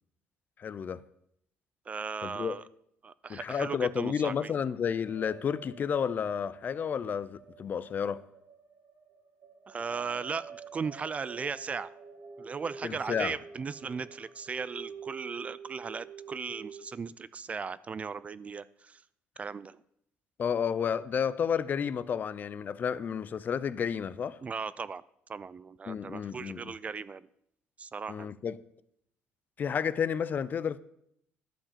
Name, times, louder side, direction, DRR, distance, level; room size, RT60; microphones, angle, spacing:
voice 1, 0.6-1.0 2.2-2.6 3.3-8.2 12.8-13.4 20.4-24.4 25.9-26.7 28.1-28.6 29.6-30.8, left 7 dB, 40° left, 0.4 m, -31 dB
voice 2, 1.9-2.6 3.0-4.5 9.7-11.9 12.4-19.0 19.4-19.8 24.4-25.0 25.3-27.3 27.8-28.3, right 5 dB, 30° right, 0.3 m, -37 dB
sound 1, 5.1-16.8, right 5 dB, 65° right, 1.6 m, -48 dB
11.5 x 4.8 x 7.4 m
cardioid pair, 115°, 5 cm